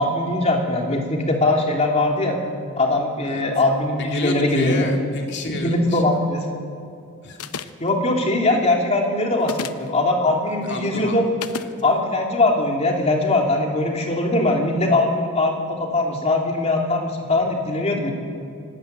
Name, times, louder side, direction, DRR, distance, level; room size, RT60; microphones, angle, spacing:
voice 1, 0.0-2.4 2.8-4.9 5.5-6.5 7.8-11.3 11.8-18.1, left 2 dB, 30° left, 1 dB, 3.0 m, -21 dB
voice 2, 4.0-6.2 7.2-7.4 10.5-11.7 17.3-17.4, left 2 dB, 50° left, 2 dB, 2.9 m, -31 dB
sound 1, 7.4-7.9 9.4-9.9 11.4-11.7, left 5 dB, 85° left, 0.9 m, -31 dB
25.5 x 12.5 x 9.4 m, 2.6 s
head